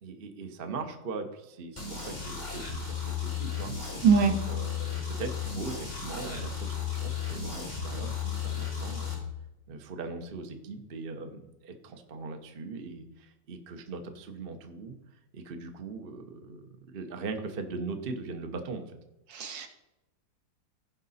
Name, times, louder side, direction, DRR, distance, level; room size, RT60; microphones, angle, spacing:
voice 1, 0.0-4.0 4.2-9.2 9.7-14.9 15.3-19.0, right 4 dB, 40° right, 5 dB, 0.8 m, -40 dB
sound 1, 1.8-9.1, left 7 dB, 20° left, 3.2 m, -34 dB
voice 2, 4.0-4.4 19.3-19.7, right 6 dB, 70° right, 5 dB, 1.7 m, -22 dB
16.0 x 5.3 x 4.2 m, 0.96 s
omnidirectional pair, 2.1 m